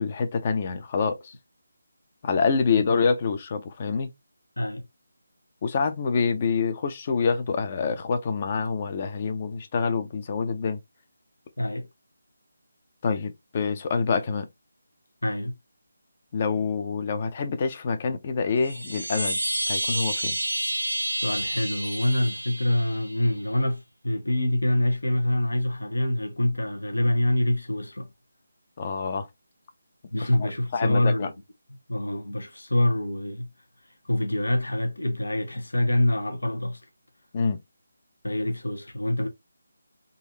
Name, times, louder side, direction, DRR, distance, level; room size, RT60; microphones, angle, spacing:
voice 1, 0.0-1.3 2.2-4.1 5.6-10.8 13.0-14.5 16.3-19.4 19.7-20.4 28.8-29.3 30.4-31.3 37.3-37.6, left 5 dB, 30° left, 0.7 m, -26 dB
voice 2, 11.6-11.9 15.2-15.5 21.1-28.1 30.1-31.3 31.9-33.5 34.0-36.8 38.2-39.3, left 1 dB, 75° left, 1.1 m, -25 dB
Chime, 18.6-23.3, right 1 dB, 85° right, 1.0 m, -29 dB
4.0 x 2.7 x 2.7 m
figure-of-eight pair, 155°, 0 cm